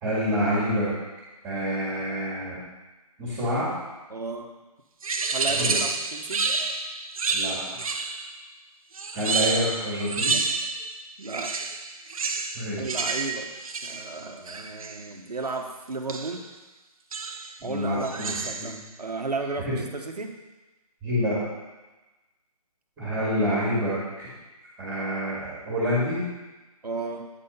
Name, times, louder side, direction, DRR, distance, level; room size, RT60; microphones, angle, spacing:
voice 1, 0.0-0.9 1.4-2.6 3.2-3.7 5.5-5.8 7.3-7.6 9.1-10.4 12.5-13.0 17.6-18.8 19.7-19.8 21.0-21.4 23.0-24.3 24.8-26.2, equal, 10° right, -7 dB, 2.0 m, -27 dB
voice 2, 4.1-4.5 5.3-6.5 11.2-11.6 12.8-13.5 13.8-16.5 17.6-20.3 26.8-27.2, right 3 dB, 85° right, 4 dB, 1.2 m, -34 dB
sound 1, 5.0-8.4 8.9-10.9 11.2-15.1 16.1-16.5 17.1-17.6 18.0-18.8, right 4 dB, 60° right, 0.8 m, -29 dB
9.2 x 4.3 x 5.5 m, 1.1 s
figure-of-eight pair, 155°, 20 cm